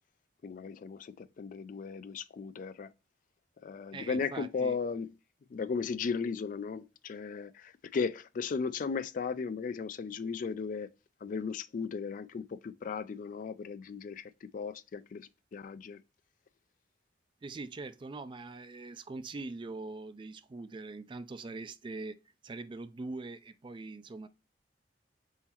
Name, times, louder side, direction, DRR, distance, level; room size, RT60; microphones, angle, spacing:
voice 1, 0.4-2.9 3.6-5.1 5.5-10.9 11.2-16.0, left 5 dB, 45° left, 0.3 m, -36 dB
voice 2, 3.9-4.8 17.4-22.2 22.4-24.3, right 3 dB, 25° right, 0.3 m, -42 dB
4.1 x 3.7 x 2.9 m
head